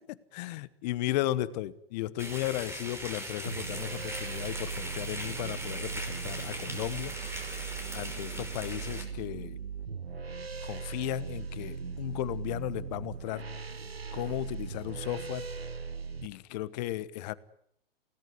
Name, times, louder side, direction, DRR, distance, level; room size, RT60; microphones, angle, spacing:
voice 1, 0.1-7.1 7.9-9.6 10.6-13.4 14.1-15.5 16.2-17.3, left 15 dB, 45° left, 18 dB, 1.3 m, -35 dB
sound 1, 2.2-9.0, right 1 dB, 10° right, 5.8 m, -40 dB
sound 2, 3.5-16.3, right 5 dB, 90° right, 1.3 m, -39 dB
29.5 x 18.0 x 9.7 m, 0.72 s
figure-of-eight pair, 110°, 30 cm